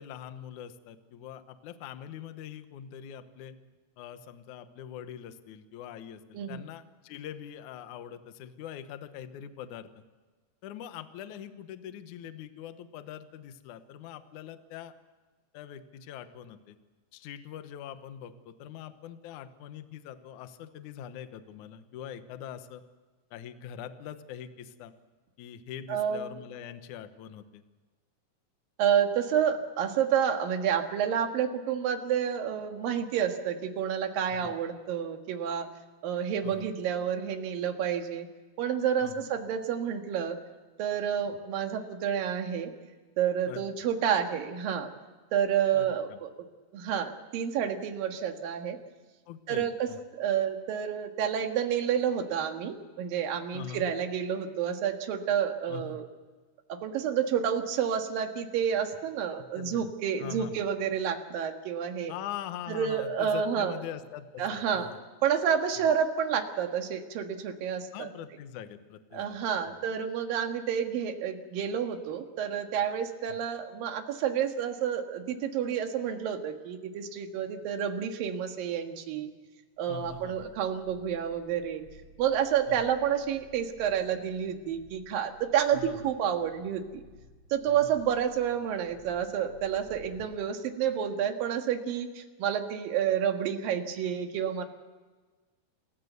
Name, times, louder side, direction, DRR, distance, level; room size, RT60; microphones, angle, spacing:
voice 1, 0.0-3.6 4.0-10.0 10.6-14.9 15.5-16.8 17.1-22.8 23.3-24.9 25.4-27.6 34.3-34.5 36.4-36.7 39.0-39.3 43.5-43.6 45.7-46.2 49.3-50.0 53.5-53.9 55.7-56.0 59.5-59.9 60.2-60.7 62.1-65.0 67.9-69.4 73.3-73.4 79.9-80.5 82.7-82.9 85.7-86.1 87.7-87.9, left 9 dB, 70° left, 10 dB, 2.0 m, -43 dB
voice 2, 25.9-26.3 28.8-35.7 36.0-38.3 38.6-40.4 40.8-42.7 43.2-44.9 45.3-46.3 46.7-48.8 49.5-56.1 56.7-62.1 62.7-63.8 64.4-64.9 65.2-68.1 69.1-79.3 79.8-81.8 82.2-87.0 87.5-94.6, right 8 dB, 60° right, 5 dB, 3.1 m, -29 dB
sound 1, 79.8-90.4 90.9-91.0, left 2 dB, 35° left, 6.6 m, -56 dB
27.5 x 15.0 x 8.1 m, 1.3 s
omnidirectional pair, 4.9 m